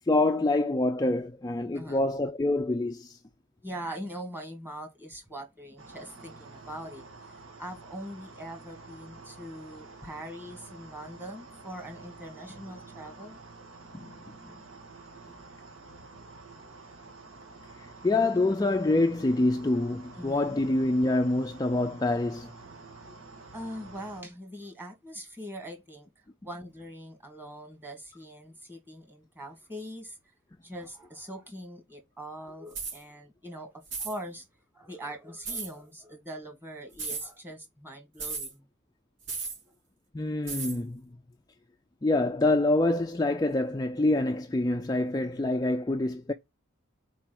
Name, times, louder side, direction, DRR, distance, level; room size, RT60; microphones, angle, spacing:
voice 1, 0.1-3.2 13.9-14.1 17.8-22.5 40.1-41.0 42.0-46.3, left 2 dB, 20° left, 0.3 m, -26 dB
voice 2, 1.7-2.1 3.6-7.1 7.6-13.4 20.1-20.6 23.5-26.1 26.4-30.2 30.6-33.7 34.0-34.5 34.7-38.7, equal, 10° right, 1.9 m, -42 dB
sound 1, 5.8-24.2, right 3 dB, 75° right, 1.9 m, -49 dB
sound 2, 32.7-33.0 33.9-34.2 35.4-35.7 36.9-37.3 38.2-38.5 39.3-39.6 40.5-40.8, right 4 dB, 60° right, 2.6 m, -35 dB
4.6 x 4.4 x 5.9 m
head